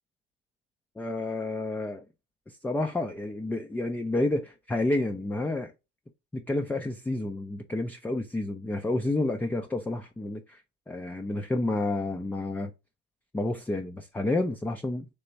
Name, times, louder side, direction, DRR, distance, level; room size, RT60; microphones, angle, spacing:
voice 1, 1.0-2.0 2.6-5.7 6.3-10.6 10.9-12.7 13.3-15.1, left 2 dB, 5° left, 0.3 m, -30 dB
3.4 x 2.9 x 3.9 m
hypercardioid pair, 75°, 33 cm